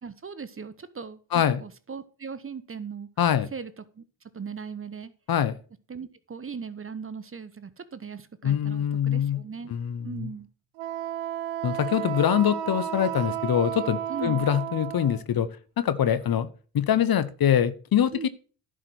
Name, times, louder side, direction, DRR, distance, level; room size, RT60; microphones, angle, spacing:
voice 1, 0.0-3.1 3.5-4.0 4.3-5.1 5.9-9.7 10.0-10.5 14.1-14.5 18.1-18.3, right 6 dB, 25° right, 0.9 m, -38 dB
voice 2, 1.3-1.6 3.2-3.5 5.3-5.5 8.4-9.4 9.7-10.3 11.6-15.5 15.8-16.5 16.7-18.3, left 9 dB, 45° left, 0.9 m, -24 dB
Wind instrument woodwind instrument, 10.8-15.2, right 11 dB, 85° right, 1.2 m, -32 dB
11.0 x 5.0 x 6.0 m
hypercardioid pair, 55°, 50 cm